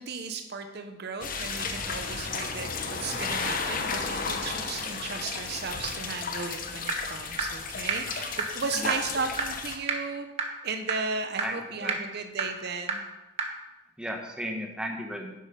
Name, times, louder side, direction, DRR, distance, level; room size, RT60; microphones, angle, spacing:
voice 1, 0.0-10.3 10.6-13.0, right 4 dB, 60° right, 7 dB, 0.8 m, -35 dB
sound 1, 1.2-9.8, left 4 dB, 50° left, 1.1 m, -33 dB
sound 2, 6.9-7.0 7.4-7.5 7.9-8.0 8.4-8.5 8.9-9.0 9.4-9.5 9.9-10.0 10.4-10.5 10.9-11.0 11.4-11.5 11.9-12.0 12.4-12.5 12.9-13.0 13.4-13.5, right 6 dB, 35° right, 1.3 m, -26 dB
voice 2, 11.4-12.1 14.0-15.3, equal, 5° right, 1 dB, 1.5 m, -35 dB
10.5 x 7.9 x 5.3 m, 1.0 s
head